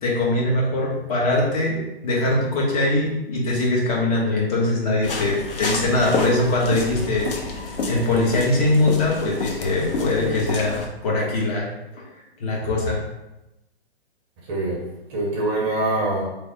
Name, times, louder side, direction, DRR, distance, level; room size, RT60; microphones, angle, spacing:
voice 1, 0.0-7.3 7.9-11.7 11.9-12.0 12.4-13.0, left 2 dB, 35° left, -3 dB, 1.0 m, -22 dB
sound 1, 5.0-10.9, left 3 dB, 60° left, 0.8 m, -29 dB
voice 2, 14.5-16.2, right 2 dB, 25° right, -3 dB, 0.7 m, -24 dB
3.3 x 2.1 x 4.3 m, 0.94 s
hypercardioid pair, 135°, 32 cm